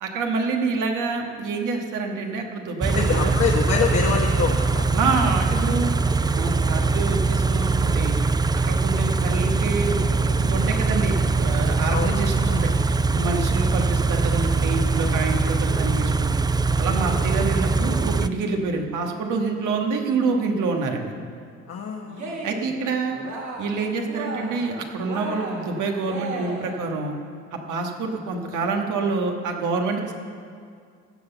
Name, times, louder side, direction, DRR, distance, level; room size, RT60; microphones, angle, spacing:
voice 1, 0.0-3.3 4.9-8.1 8.7-16.4 16.8-21.1 22.4-23.2 23.6-27.1 27.5-30.1, right 4 dB, 85° right, 2 dB, 1.5 m, -27 dB
Car / Idling, 2.8-18.3, right 3 dB, 15° right, 0.3 m, -22 dB
voice 2, 3.0-4.9 11.9-12.3 17.0-17.3 21.7-22.4, left 5 dB, 55° left, 0 dB, 1.2 m, -26 dB
Cheering, 22.1-22.7 23.1-23.8 24.0-24.7 25.1-26.8, right 3 dB, 65° right, 2.3 m, -34 dB
16.0 x 5.9 x 7.1 m, 2.2 s
cardioid pair, 90°, 30 cm